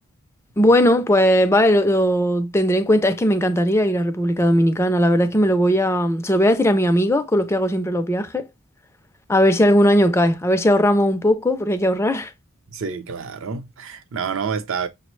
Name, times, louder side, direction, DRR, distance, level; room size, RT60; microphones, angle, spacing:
voice 1, 0.6-8.4 9.3-12.3, equal, 10° left, 0.3 m, -18 dB
voice 2, 12.7-14.9, right 6 dB, 60° right, 0.5 m, -28 dB
6.0 x 2.0 x 3.0 m
head